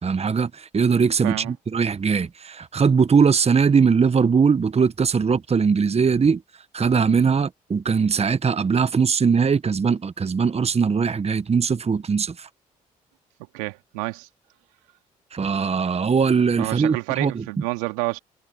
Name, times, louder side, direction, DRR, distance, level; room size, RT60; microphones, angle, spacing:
voice 1, 0.0-6.4 6.7-12.5 15.3-17.4, right 5 dB, 35° right, 1.3 m, -20 dB
voice 2, 13.5-14.3 16.6-18.2, right 27 dB, 80° right, 2.6 m, -29 dB
hypercardioid pair, 50°, 19 cm